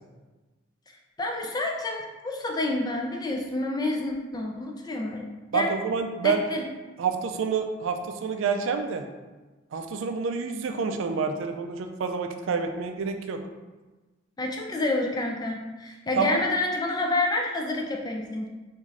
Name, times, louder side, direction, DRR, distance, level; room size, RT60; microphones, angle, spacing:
voice 1, 1.2-5.2 5.5-5.7 6.2-6.6 14.4-18.5, left 2 dB, 20° left, 1 dB, 0.3 m, -28 dB
voice 2, 5.5-6.4 7.0-9.1 9.7-13.4 16.2-16.4, right 5 dB, 85° right, 6 dB, 0.3 m, -28 dB
3.6 x 2.5 x 3.1 m, 1.2 s
head